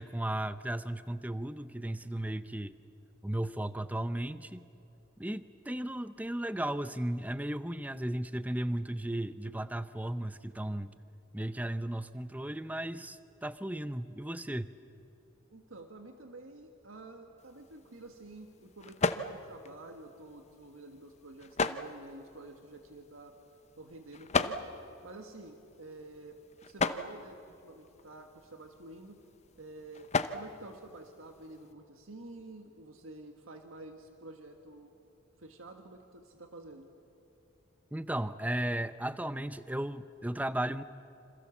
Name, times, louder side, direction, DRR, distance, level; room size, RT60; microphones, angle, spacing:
voice 1, 0.0-2.7 3.2-4.6 5.2-10.9 11.3-14.7 37.9-40.8, right 1 dB, 10° right, 13 dB, 0.6 m, -35 dB
voice 2, 15.5-23.3 23.8-24.6 25.0-29.2 29.6-34.9 35.4-36.9, right 2 dB, 85° right, 4 dB, 1.7 m, -49 dB
sound 1, 17.4-31.7, left 4 dB, 35° left, 0.8 m, -38 dB
28.0 x 26.5 x 7.2 m, 2.7 s
head